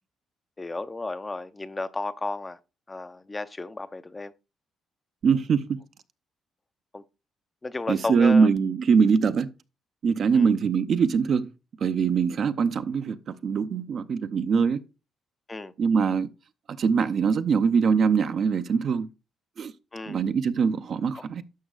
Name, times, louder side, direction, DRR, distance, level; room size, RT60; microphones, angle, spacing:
voice 1, 0.6-2.6 2.9-4.3 6.9-7.0 7.6-8.5 10.3-10.5 15.5-15.7 19.9-20.2 21.1-21.2, left 2 dB, 20° left, 0.5 m, -33 dB
voice 2, 5.2-5.8 7.9-9.5 10.0-11.5 11.8-14.8 15.8-16.3 16.7-19.1 19.6-19.7 20.1-21.4, right 6 dB, 60° right, 0.6 m, -23 dB
11.0 x 6.3 x 2.3 m
cardioid pair, 90°, 0 cm